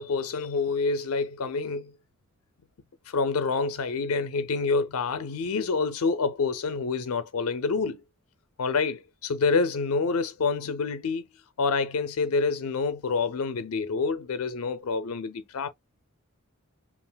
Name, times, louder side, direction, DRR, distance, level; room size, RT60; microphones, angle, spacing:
voice 1, 0.0-1.9 3.1-8.0 8.6-11.2 11.6-15.7, left 4 dB, 80° left, 0.5 m, -27 dB
5.5 x 2.5 x 2.2 m
head